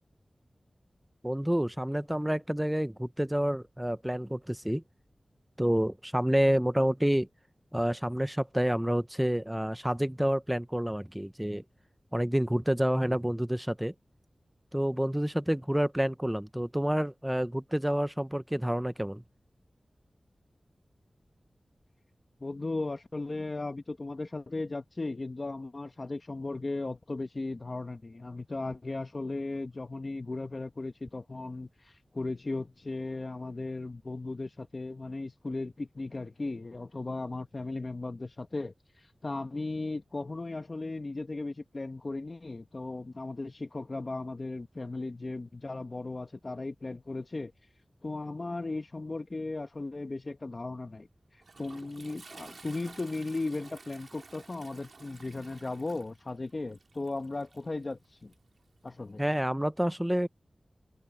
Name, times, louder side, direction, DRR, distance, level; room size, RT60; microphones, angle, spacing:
voice 1, 1.2-4.8 5.6-7.3 7.7-11.6 12.1-13.9 14.7-19.2 59.2-60.3, equal, 10° right, 0.8 m, -28 dB
voice 2, 22.4-38.7 39.2-47.5 48.0-51.1 51.6-58.3 58.8-59.2, left 2 dB, 50° left, 1.5 m, -36 dB
Toilet flush, 50.9-59.2, right 3 dB, 75° right, 2.9 m, -53 dB
wide cardioid pair, 55°, 0 cm